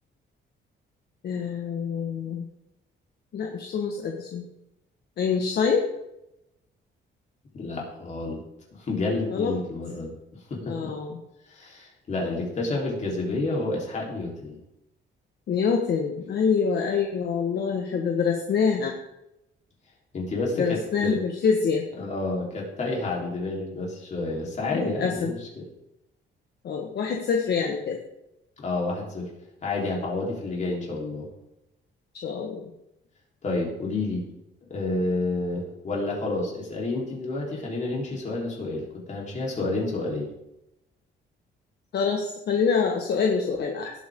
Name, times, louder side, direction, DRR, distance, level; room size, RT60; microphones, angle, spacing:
voice 1, 1.2-2.4 3.3-4.4 5.2-5.9 9.3-9.5 10.6-11.2 15.5-18.9 20.6-21.8 24.7-25.3 26.6-28.0 32.2-32.7 41.9-43.9, left 6 dB, 55° left, 2 dB, 1.4 m, -25 dB
voice 2, 7.5-8.4 8.7-10.1 10.5-10.9 11.5-14.6 20.1-21.2 22.0-25.7 28.6-29.3 29.6-31.3 33.4-34.2 34.7-40.3, left 2 dB, 35° left, -2 dB, 3.7 m, -29 dB
18.0 x 8.3 x 3.7 m, 0.87 s
cardioid pair, 165°, 20 cm